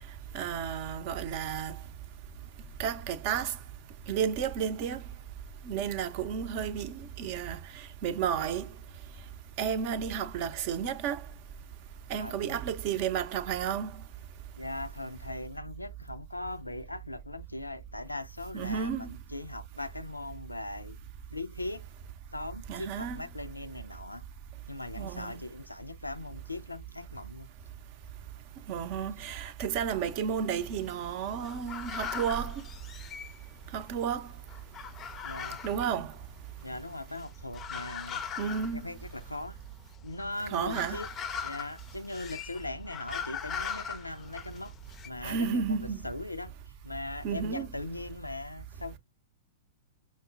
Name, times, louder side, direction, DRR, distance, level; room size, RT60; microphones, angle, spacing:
voice 1, 0.3-1.8 2.8-3.5 4.1-5.0 5.7-7.6 8.0-8.7 9.6-11.2 12.1-13.9 18.5-19.1 22.7-23.2 25.0-25.3 28.7-32.5 33.7-34.2 35.6-36.1 38.4-38.8 40.5-41.0 45.2-46.0 47.2-47.7, right 7 dB, 45° right, 0.6 m, -32 dB
voice 2, 12.2-12.6 14.6-21.0 21.3-21.9 22.3-24.2 24.7-27.5 35.2-35.6 36.6-38.2 38.7-39.6 40.0-41.1 41.4-44.7 45.0-45.8 46.0-46.5 46.8-49.0, left 2 dB, 90° left, 0.4 m, -39 dB
sound 1, 30.0-33.9 34.2-45.1, left 7 dB, 25° left, 0.5 m, -41 dB
5.7 x 2.1 x 2.4 m
figure-of-eight pair, 105°, 0 cm